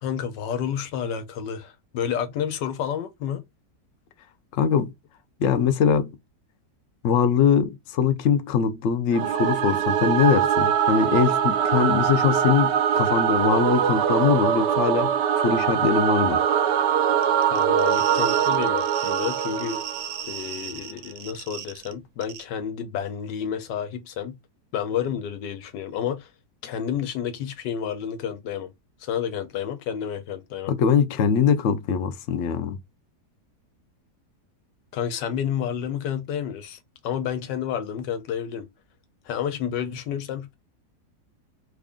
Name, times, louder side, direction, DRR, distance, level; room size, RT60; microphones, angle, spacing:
voice 1, 0.0-3.4 17.5-19.8 20.3-24.3 24.7-26.3 26.6-28.7 29.0-30.7 34.9-38.7 39.2-40.5, left 8 dB, 85° left, 1.4 m, -30 dB
voice 2, 4.5-4.9 5.4-6.1 7.0-16.4 30.7-32.8, left 7 dB, 65° left, 0.7 m, -22 dB
Singing / Musical instrument, 9.1-20.4, right 9 dB, 90° right, 1.2 m, -22 dB
sound 1, 17.2-21.9 22.2-22.4, right 9 dB, 70° right, 1.0 m, -37 dB
3.3 x 2.5 x 3.5 m
omnidirectional pair, 1.8 m